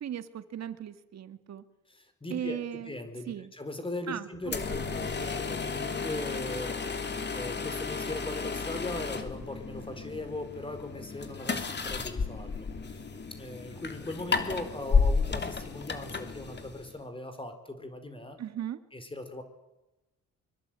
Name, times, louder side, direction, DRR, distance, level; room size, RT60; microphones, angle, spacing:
voice 1, 0.0-1.7 2.3-2.9 3.3-3.5 4.1-4.9 18.4-18.8, right 10 dB, 60° right, 10 dB, 1.9 m, -37 dB
voice 2, 1.9-13.0 13.3-18.4 18.9-19.4, left 2 dB, 15° left, 8 dB, 4.2 m, -39 dB
sound 1, 4.4-17.0, left 5 dB, 35° left, 2.9 m, -32 dB
24.0 x 23.5 x 9.0 m, 1.0 s
cardioid pair, 90°, 30 cm